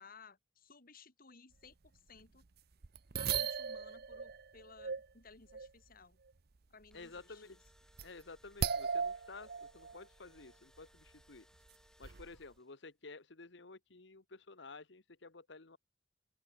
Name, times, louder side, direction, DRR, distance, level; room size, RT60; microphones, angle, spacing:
voice 1, 0.0-2.4 3.2-6.2 6.7-7.5, left 4 dB, 50° left, 2.5 m, -59 dB
sound 1, 1.9-2.0 2.2-2.3 2.8-5.1 5.5-5.7 6.9-7.2 7.7-8.2 8.6-10.0 10.4-10.5 11.1-11.2 12.0-12.4, right 6 dB, 55° right, 0.8 m, -37 dB
Engine / Drill, 6.7-12.9, left 1 dB, 5° left, 5.4 m, -68 dB
voice 2, 6.9-7.6 8.0-11.5 12.0-15.8, left 3 dB, 65° left, 1.4 m, -52 dB
open air
head